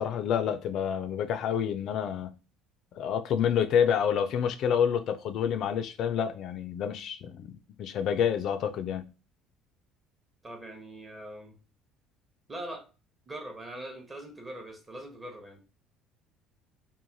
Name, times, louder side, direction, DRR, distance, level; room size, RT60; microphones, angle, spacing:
voice 1, 0.0-2.4 2.9-9.1, left 8 dB, 55° left, 0.4 m, -28 dB
voice 2, 10.4-11.6 12.5-12.9 13.3-15.6, right 1 dB, 20° right, 0.7 m, -42 dB
3.1 x 2.2 x 2.6 m
cardioid pair, 120°, 0 cm